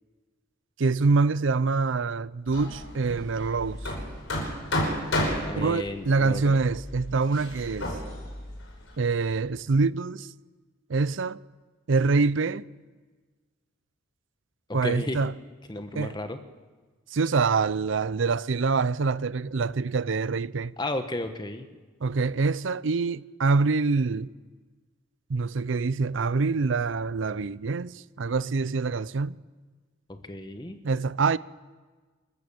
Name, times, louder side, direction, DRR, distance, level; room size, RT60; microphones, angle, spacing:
voice 1, 0.8-3.8 5.6-7.9 9.0-10.3 10.9-11.4 11.9-12.6 14.7-15.3 15.9-16.1 17.1-20.7 22.0-24.3 25.3-29.4 30.8-31.4, right 4 dB, 70° right, 0.6 m, -25 dB
Hammer, 2.5-9.3, left 1 dB, 80° left, 5.3 m, -33 dB
voice 2, 5.5-6.6 14.7-15.3 15.7-16.4 20.8-21.7 30.1-30.8, left 1 dB, 20° left, 1.3 m, -33 dB
27.5 x 14.0 x 7.1 m
head